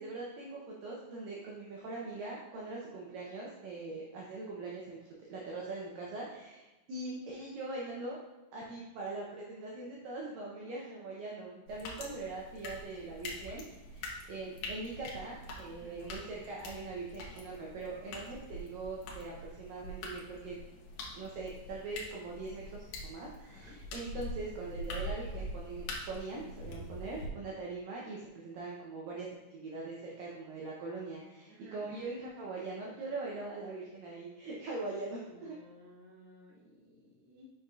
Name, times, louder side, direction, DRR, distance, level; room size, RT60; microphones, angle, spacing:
voice 1, 0.0-5.0 5.3-8.2 8.5-20.6 21.1-35.6, right 3 dB, 80° right, -3 dB, 2.0 m, -42 dB
sound 1, 11.7-27.3, left 1 dB, 80° left, 1.8 m, -44 dB
voice 2, 23.5-23.8 31.5-31.9 35.3-37.5, left 1 dB, 65° right, -6 dB, 1.4 m, -57 dB
6.5 x 6.3 x 2.4 m, 1.1 s
omnidirectional pair, 4.9 m